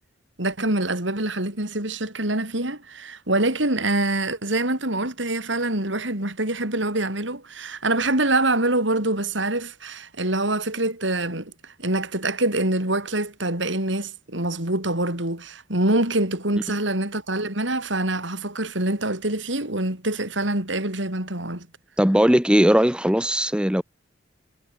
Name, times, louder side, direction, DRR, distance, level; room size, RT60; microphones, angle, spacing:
voice 1, 0.4-11.5 11.8-21.7, right 2 dB, 75° right, 6.0 m, -25 dB
voice 2, 22.0-23.8, equal, 5° right, 1.1 m, -18 dB
head